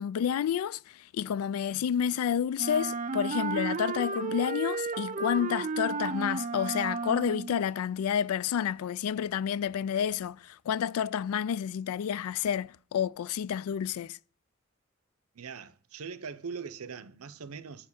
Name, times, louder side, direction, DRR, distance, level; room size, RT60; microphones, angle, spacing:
voice 1, 0.0-14.2, left 8 dB, 90° left, 0.3 m, -30 dB
Wind instrument woodwind instrument, 2.6-7.6, right 4 dB, 35° right, 0.4 m, -33 dB
voice 2, 15.3-17.9, right 5 dB, 90° right, 0.7 m, -41 dB
8.4 x 5.2 x 7.0 m
head